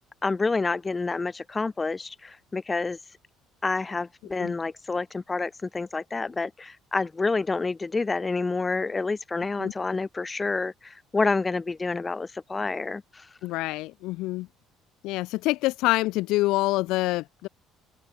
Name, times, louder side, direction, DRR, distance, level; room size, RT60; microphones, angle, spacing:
voice 1, 0.2-3.0 3.6-13.3, left 3 dB, 15° left, 3.7 m, -28 dB
voice 2, 13.4-14.5 15.0-17.5, left 19 dB, 70° left, 1.9 m, -26 dB
open air
cardioid pair, 180°, 0 cm